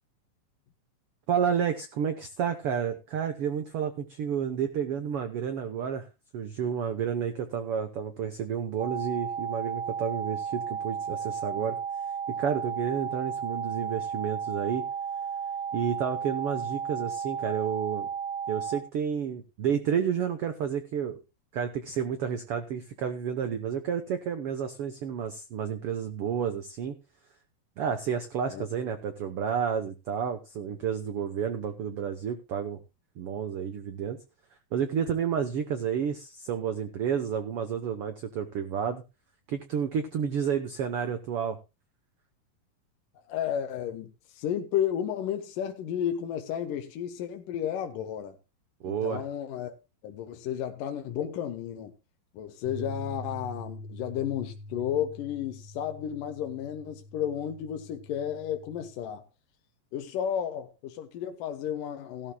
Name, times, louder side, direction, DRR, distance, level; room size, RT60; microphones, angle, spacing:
voice 1, 1.3-6.1 6.3-11.8 12.4-14.9 15.7-18.1 18.5-21.2 21.5-27.0 27.8-32.8 33.2-34.2 34.7-39.0 39.5-41.6 48.8-49.2, right 7 dB, 80° right, 1.2 m, -30 dB
sound 1, 8.8-18.8, right 7 dB, 35° right, 1.5 m, -33 dB
voice 2, 43.3-44.1 44.3-48.4 48.8-49.7 50.0-51.9 52.3-59.2 59.9-62.3, left 9 dB, 75° left, 2.6 m, -32 dB
sound 2, 52.6-58.9, left 1 dB, 50° left, 3.5 m, -44 dB
16.5 x 13.0 x 2.2 m
omnidirectional pair, 4.0 m